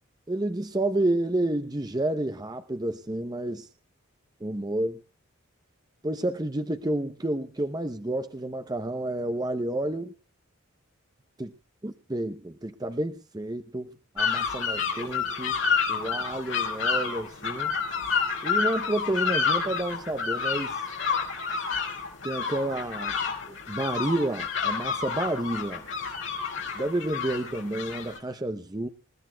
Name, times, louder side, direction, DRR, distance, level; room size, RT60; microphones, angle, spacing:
voice 1, 0.3-3.7 4.4-5.0 6.0-10.1 11.4-11.5 11.8-15.6 15.9-17.7 18.4-20.8 22.2-23.2 23.5-25.8 26.7-28.9, right 1 dB, 20° right, 8 dB, 0.7 m, -30 dB
sound 1, 14.2-28.2, left 5 dB, 60° left, 5.4 m, -29 dB
28.0 x 15.0 x 2.3 m, 0.37 s
head